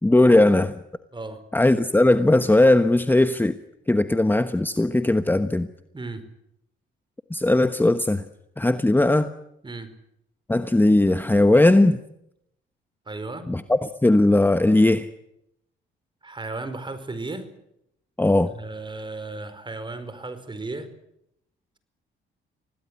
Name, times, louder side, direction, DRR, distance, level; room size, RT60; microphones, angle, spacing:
voice 1, 0.0-0.7 1.5-3.6 3.9-5.7 7.3-8.2 8.6-9.3 10.5-12.0 13.5-15.1 18.2-18.5, left 2 dB, 10° left, 1.2 m, -18 dB
voice 2, 13.1-13.4 16.2-17.5 18.5-20.9, right 3 dB, 25° right, 4.9 m, -34 dB
25.5 x 18.5 x 9.7 m
cardioid pair, 90°, 20 cm